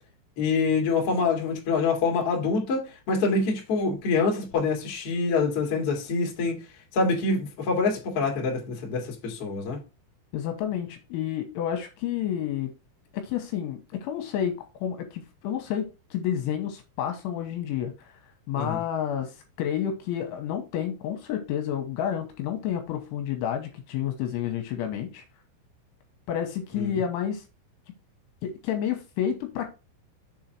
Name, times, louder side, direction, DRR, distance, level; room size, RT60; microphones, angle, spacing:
voice 1, 0.4-6.6 6.9-9.8 18.5-18.8 26.7-27.0, left 4 dB, 50° left, 1.7 m, -26 dB
voice 2, 10.3-12.7 13.2-14.6 14.8-18.1 18.5-25.2 26.3-27.4 28.4-29.7, left 9 dB, 80° left, 3.1 m, -30 dB
7.1 x 3.9 x 4.5 m
omnidirectional pair, 5.9 m